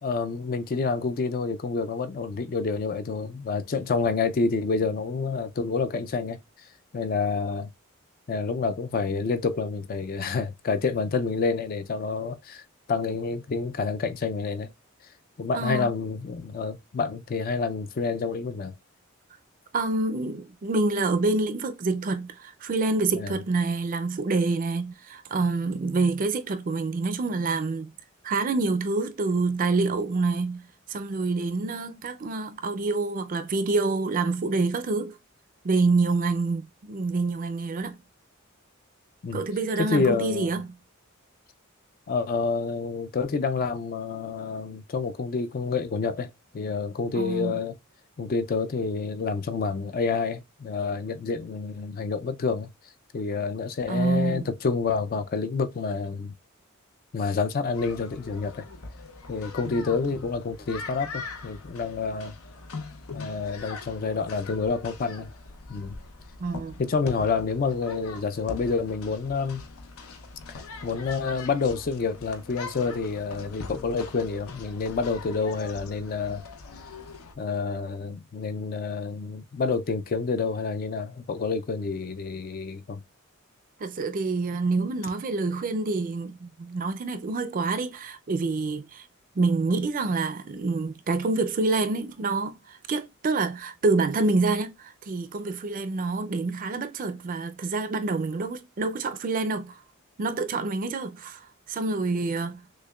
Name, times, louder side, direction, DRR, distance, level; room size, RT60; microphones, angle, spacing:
voice 1, 0.0-6.4 6.9-7.7 8.3-12.6 12.9-14.7 15.4-18.7 23.1-23.4 39.2-39.4 39.8-40.6 42.1-47.7 48.2-52.7 53.1-56.3 57.1-58.6 59.3-62.3 63.1-65.3 65.7-66.0 66.8-69.6 70.5-76.4 77.4-83.0, left 4 dB, 45° left, 0.4 m, -28 dB
voice 2, 15.5-15.9 19.7-27.9 28.2-35.1 35.6-38.0 39.3-40.7 47.1-47.5 53.9-54.4 66.4-66.8 83.8-89.0 89.4-99.8 100.2-101.4 101.7-102.6, right 3 dB, 40° right, 0.4 m, -27 dB
sound 1, 57.7-77.3, left 4 dB, 85° left, 0.7 m, -42 dB
6.3 x 2.2 x 2.3 m
head